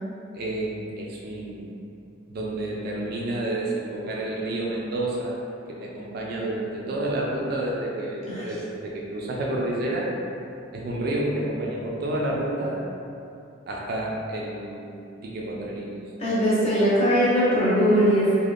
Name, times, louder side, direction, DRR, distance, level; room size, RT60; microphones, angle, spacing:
voice 1, 0.3-1.7 2.3-5.4 5.7-10.1 10.7-12.8 13.7-14.9 15.2-16.0, right 1 dB, 50° right, -3 dB, 0.3 m, -29 dB
voice 2, 16.2-18.4, equal, 30° left, -9 dB, 0.8 m, -20 dB
2.4 x 2.2 x 3.3 m, 2.7 s
head